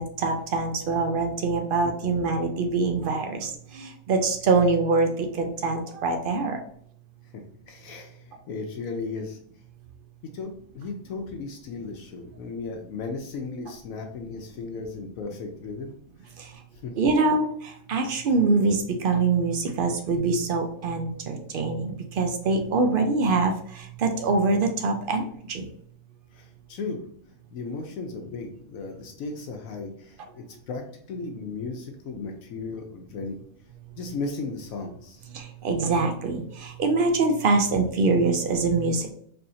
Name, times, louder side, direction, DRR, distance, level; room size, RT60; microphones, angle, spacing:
voice 1, 0.0-6.6 16.4-16.5 17.0-25.7 35.3-39.1, right 3 dB, 85° right, 5 dB, 0.4 m, -24 dB
voice 2, 7.3-9.4 10.3-15.9 16.2-16.3 16.8-17.1 26.3-27.0 27.5-33.4 34.0-35.2, left 4 dB, 70° left, 3 dB, 1.0 m, -36 dB
4.4 x 3.4 x 2.7 m, 0.64 s
omnidirectional pair, 1.5 m